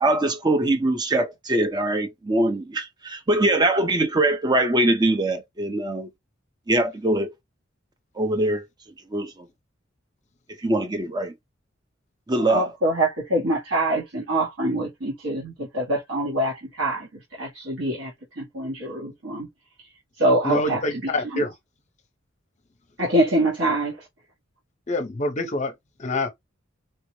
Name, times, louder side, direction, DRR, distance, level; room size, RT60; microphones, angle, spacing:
voice 1, 0.0-6.1 6.7-7.3 8.2-8.6 9.1-9.3 10.6-11.3 12.3-12.7, right 1 dB, 20° right, 0.6 m, -22 dB
voice 2, 12.4-19.5 20.2-21.5 23.0-23.9, right 1 dB, 70° right, 1.1 m, -25 dB
voice 3, 20.4-21.5 24.9-25.7 26.0-26.3, left 2 dB, 35° left, 0.7 m, -26 dB
4.4 x 2.0 x 3.0 m
head